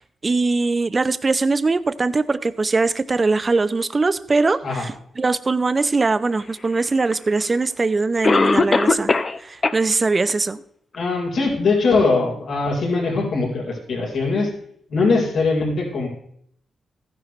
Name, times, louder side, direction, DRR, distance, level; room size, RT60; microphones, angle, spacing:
voice 1, 0.0-9.1 9.4-10.6, right 3 dB, 30° right, 14 dB, 0.6 m, -21 dB
Cough, 7.1-7.2 8.2-9.4 9.6-9.7 10.3-10.4 10.9-11.0, left 3 dB, 35° left, 0.8 m, -18 dB
voice 2, 10.9-14.5 14.9-16.1, left 3 dB, 75° left, -2 dB, 4.2 m, -21 dB
14.5 x 10.5 x 3.2 m, 0.67 s
cardioid pair, 100°, 0 cm